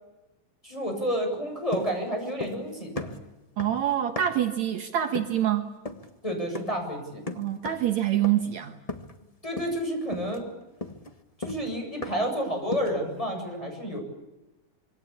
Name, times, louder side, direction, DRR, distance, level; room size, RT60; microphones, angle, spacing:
voice 1, 0.6-3.2 6.2-7.2 9.4-10.4 11.4-14.0, equal, 10° left, 2 dB, 7.8 m, -30 dB
sound 1, 1.7-2.7 3.0-4.5 5.1-5.4 5.9-6.1 6.5-6.9 7.3-7.9 8.2-8.6 8.9-9.3 9.6-9.8 10.1-12.4 12.7-13.1, left 2 dB, 75° left, 0.3 m, -37 dB
voice 2, 3.6-5.7 7.4-8.8, right 11 dB, 65° right, 5 dB, 2.6 m, -26 dB
26.5 x 25.0 x 8.6 m, 1.0 s
omnidirectional pair, 3.6 m